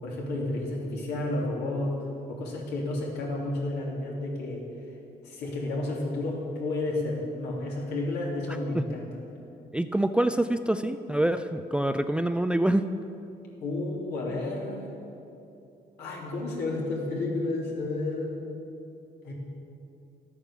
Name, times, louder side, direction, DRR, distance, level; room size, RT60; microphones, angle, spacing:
voice 1, 0.0-2.0 2.3-4.6 5.2-9.2 13.6-14.8 16.0-18.4 19.2-19.3, left 2 dB, 80° left, -3 dB, 3.0 m, -31 dB
voice 2, 9.7-12.8, right 1 dB, 5° right, 9 dB, 0.4 m, -25 dB
12.0 x 8.8 x 7.0 m, 2.7 s
cardioid pair, 110°, 17 cm